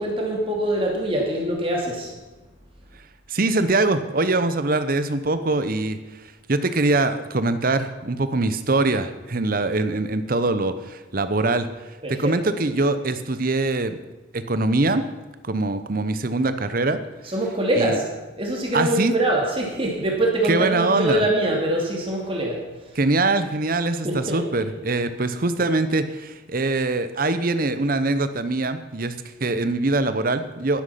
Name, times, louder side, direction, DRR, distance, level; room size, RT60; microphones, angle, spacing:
voice 1, 0.0-2.1 12.0-12.1 17.3-18.0 18.4-22.6 24.0-24.6, right 1 dB, 30° right, -1 dB, 2.4 m, -23 dB
voice 2, 3.3-6.2 6.5-11.7 12.1-14.0 14.3-15.0 15.4-17.0 17.7-18.0 18.7-19.1 20.4-21.3 22.9-30.8, right 2 dB, 45° right, 11 dB, 0.8 m, -23 dB
12.0 x 10.5 x 5.8 m, 1.1 s
head